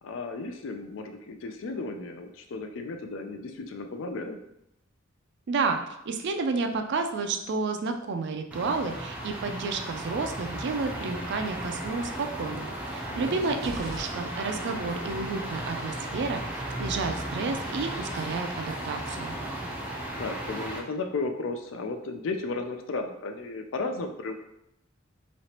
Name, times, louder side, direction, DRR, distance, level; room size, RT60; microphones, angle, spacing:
voice 1, 0.0-4.4 13.1-13.6 20.2-24.4, left 3 dB, 70° left, 6 dB, 0.4 m, -34 dB
voice 2, 5.5-5.8 6.1-19.3, right 4 dB, 60° right, 6 dB, 0.4 m, -31 dB
sound 1, 8.5-20.8, right 1 dB, 5° right, 0.5 m, -35 dB
sound 2, 13.6-14.9, right 1 dB, 85° right, 0.9 m, -43 dB
3.1 x 2.9 x 2.8 m, 0.80 s
head